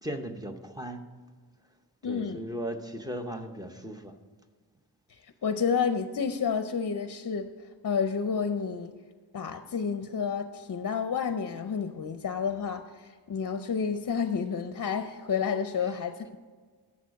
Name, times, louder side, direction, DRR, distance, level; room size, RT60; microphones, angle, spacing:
voice 1, 0.0-1.0 2.1-4.1, right 1 dB, 10° right, 5 dB, 0.7 m, -37 dB
voice 2, 2.0-2.4 5.1-7.5 7.8-8.9 9.3-16.4, left 6 dB, 50° left, 9 dB, 0.6 m, -30 dB
11.0 x 7.2 x 5.2 m, 1.5 s
wide cardioid pair, 130°, 41 cm